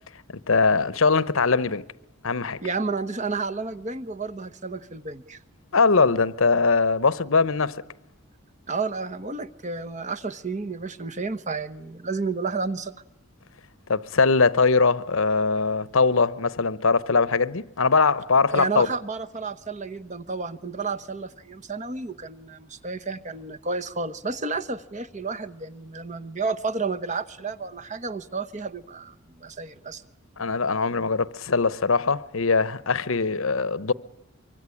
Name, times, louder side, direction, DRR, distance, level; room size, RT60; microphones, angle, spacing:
voice 1, 0.5-1.8 2.2-2.6 5.7-7.8 13.9-18.9 30.4-33.9, left 4 dB, 75° left, 0.9 m, -21 dB
voice 2, 2.6-5.4 8.7-12.9 18.5-30.0, right 4 dB, 35° right, 1.1 m, -31 dB
24.5 x 24.5 x 9.9 m
head